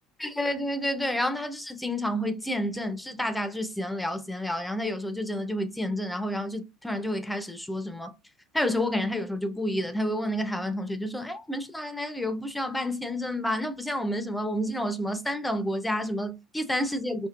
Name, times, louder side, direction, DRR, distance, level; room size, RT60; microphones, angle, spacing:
voice 1, 0.2-8.1 8.5-17.3, left 1 dB, 5° left, 0.6 m, -30 dB
4.4 x 2.7 x 2.5 m
supercardioid pair, 85°, 0 cm